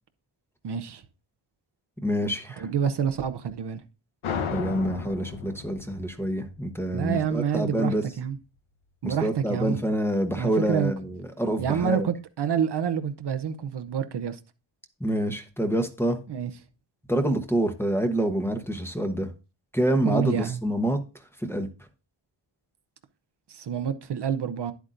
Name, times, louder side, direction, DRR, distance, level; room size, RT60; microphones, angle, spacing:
voice 1, 0.6-1.0 2.6-3.8 6.9-8.4 9.0-9.8 10.4-10.9 11.6-14.4 16.3-16.5 20.0-20.6 23.5-24.7, right 7 dB, 55° right, 0.7 m, -27 dB
voice 2, 2.0-2.7 4.5-8.0 9.0-12.1 15.0-16.2 17.1-19.3 19.7-21.0 21.4-21.7, right 1 dB, 5° left, 0.9 m, -27 dB
sound 1, 4.2-7.5, left 6 dB, 75° left, 1.1 m, -34 dB
10.5 x 8.1 x 2.5 m
wide cardioid pair, 140°, 50 cm